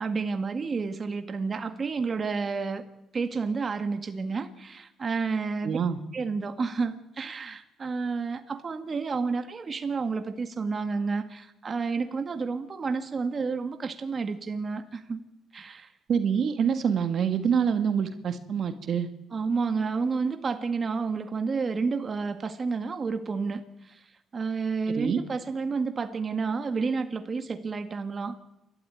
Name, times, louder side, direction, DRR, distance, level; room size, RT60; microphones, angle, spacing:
voice 1, 0.0-2.8 3.1-5.8 6.1-15.2 15.5-15.9 19.3-24.0 24.3-28.4, right 4 dB, 40° right, 8 dB, 1.8 m, -30 dB
voice 2, 5.6-6.0 16.1-19.1 24.9-25.2, right 7 dB, 60° right, 9 dB, 1.8 m, -26 dB
28.0 x 13.0 x 9.4 m, 0.89 s
cardioid pair, 90°, 0 cm